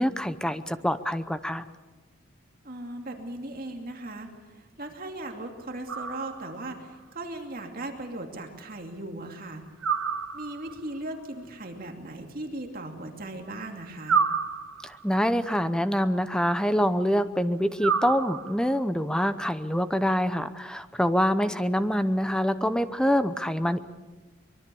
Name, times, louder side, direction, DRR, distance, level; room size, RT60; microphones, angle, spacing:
voice 1, 0.0-1.7 14.8-23.8, equal, 5° left, 11 dB, 0.7 m, -25 dB
voice 2, 2.6-9.6 10.3-14.2, right 1 dB, 40° right, 3 dB, 2.7 m, -38 dB
sound 1, 5.9-6.7 9.8-10.8 14.1-15.1 17.8-18.8, right 6 dB, 75° right, 1.4 m, -29 dB
24.0 x 22.5 x 7.0 m, 1.3 s
head